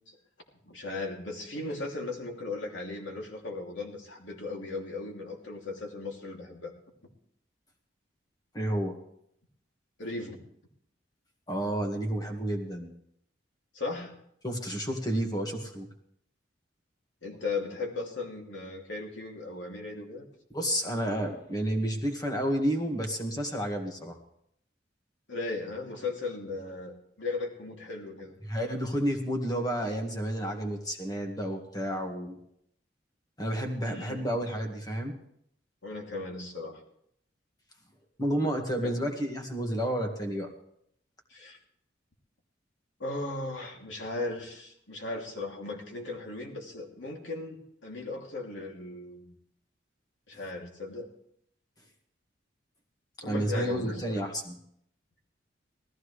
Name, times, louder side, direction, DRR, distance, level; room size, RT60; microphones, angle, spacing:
voice 1, 0.7-6.7 10.0-10.4 13.7-14.1 17.2-20.2 25.3-28.3 33.8-34.3 35.8-36.8 38.8-39.0 41.3-41.6 43.0-49.3 50.3-51.1 53.2-54.2, left 3 dB, 85° left, 0 dB, 2.9 m, -37 dB
voice 2, 8.5-9.0 11.5-12.9 14.4-15.9 20.5-24.2 28.4-32.4 33.4-35.1 38.2-40.5 53.2-54.6, right 1 dB, 20° left, 3 dB, 1.9 m, -31 dB
18.5 x 14.5 x 3.3 m, 0.71 s
head